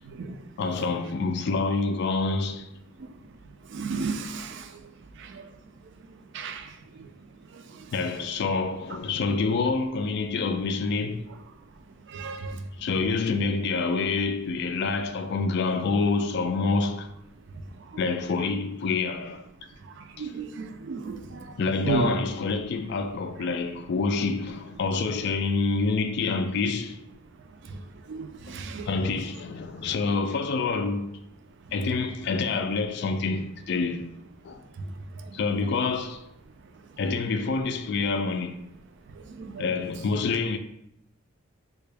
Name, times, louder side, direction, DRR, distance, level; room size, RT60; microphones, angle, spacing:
voice 1, 0.0-0.4 0.8-0.9 3.7-4.8 5.2-5.5 6.3-7.1 7.5-7.8 12.1-12.6 17.9-18.0 20.0-21.5 21.8-22.2 27.7-27.8 28.1-28.9 35.2-35.3 39.2-39.6, right 4 dB, 60° right, 0.4 m, -33 dB
voice 2, 0.6-2.7 7.9-11.3 12.8-17.1 18.0-19.5 20.2-20.3 21.6-27.0 28.9-31.1 31.7-34.1 34.4-34.6 35.3-36.3 37.0-38.6 39.6-40.6, left 4 dB, 55° left, 0.3 m, -27 dB
3.7 x 2.3 x 3.3 m
head